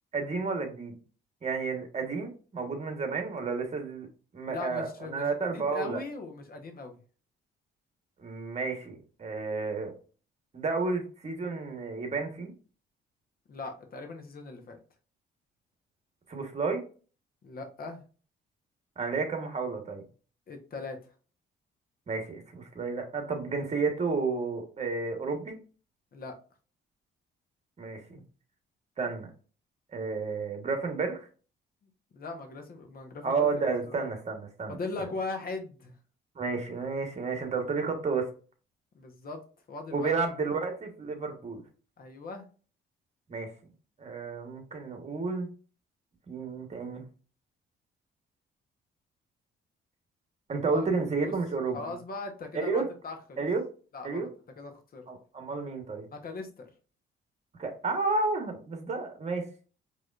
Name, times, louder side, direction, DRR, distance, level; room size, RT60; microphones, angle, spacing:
voice 1, 0.1-0.9 1.4-4.1 4.3-6.0 8.2-9.9 10.5-12.5 16.3-16.8 19.0-20.0 22.1-25.6 27.8-28.2 29.0-29.3 29.9-31.3 33.2-35.1 36.3-38.3 39.9-41.6 43.3-43.5 44.0-45.5 46.3-47.0 50.5-51.8 52.5-52.8 53.4-53.6 54.0-54.3 55.1-56.0 57.6-59.5, right 4 dB, 35° right, 5 dB, 1.3 m, -31 dB
voice 2, 4.5-7.0 13.5-14.8 17.4-18.0 20.5-21.0 26.1-26.4 32.1-33.5 33.9-34.1 34.7-35.9 38.9-39.4 39.7-40.2 42.0-42.5 50.7-50.8 51.2-51.3 51.7-53.4 53.9-54.3 54.6-55.1 56.1-56.7, left 3 dB, 50° left, 5 dB, 1.1 m, -39 dB
4.8 x 3.1 x 2.5 m, 0.38 s
cardioid pair, 90°, 20 cm